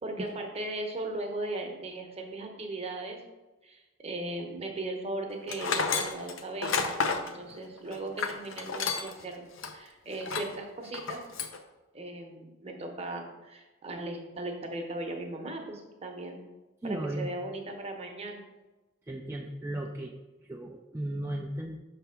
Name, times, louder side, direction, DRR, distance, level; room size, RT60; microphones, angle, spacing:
voice 1, 0.0-3.2 3.6-6.8 7.2-11.3 11.9-16.4 16.8-18.4, right 2 dB, 30° right, 2 dB, 0.9 m, -38 dB
Tools, 5.5-9.2 9.6-9.7 10.2-10.6 10.9-11.6, left 5 dB, 80° left, 0.6 m, -31 dB
voice 2, 16.8-17.3 19.1-20.1 20.4-21.7, right 1 dB, 15° right, 0 dB, 0.4 m, -35 dB
5.7 x 3.4 x 5.7 m, 1.1 s
head